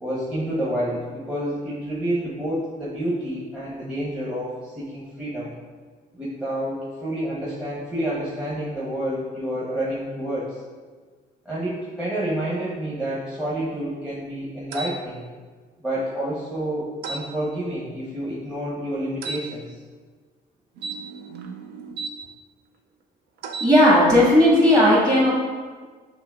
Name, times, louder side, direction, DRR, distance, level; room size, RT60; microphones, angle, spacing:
voice 1, 0.0-5.5 6.2-10.6 11.4-15.2 15.8-19.8, right 1 dB, 5° right, -9 dB, 0.8 m, -29 dB
sound 1, 14.7-15.0 17.0-17.3 19.2-19.4 20.8-22.1 23.4-23.7, right 4 dB, 75° right, 0.4 m, -33 dB
voice 2, 23.6-25.3, left 1 dB, 25° right, -5 dB, 1.4 m, -15 dB
5.9 x 2.9 x 2.3 m, 1.5 s
cardioid pair, 110°, 17 cm